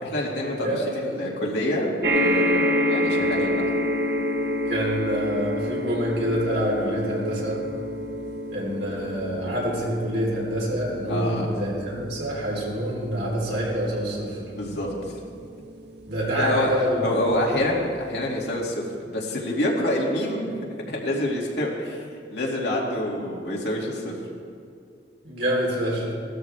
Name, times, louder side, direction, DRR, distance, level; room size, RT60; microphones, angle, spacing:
voice 1, 0.0-3.6 11.1-11.6 14.5-14.9 16.3-16.7 17.0-20.6 20.9-22.0 22.3-24.1, left 1 dB, 75° left, -3 dB, 2.4 m, -27 dB
sound 1, 2.0-16.6 17.3-17.4 17.7-17.8, equal, 65° right, 1.3 m, -28 dB
voice 2, 4.7-7.6 8.5-14.4 16.1-17.2 25.2-26.1, equal, 85° right, -4 dB, 4.0 m, -26 dB
17.0 x 13.0 x 3.5 m, 2.2 s
head